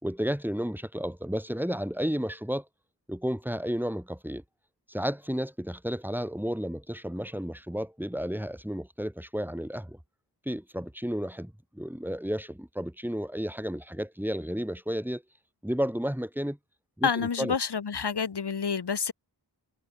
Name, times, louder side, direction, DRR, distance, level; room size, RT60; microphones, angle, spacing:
voice 1, 0.0-2.6 3.1-4.4 4.9-10.0 10.4-15.2 15.6-16.6 17.0-17.5, equal, 5° right, 3.5 m, -32 dB
voice 2, 17.0-19.1, left 6 dB, 65° left, 1.5 m, -28 dB
wide cardioid pair, 70°, 44 cm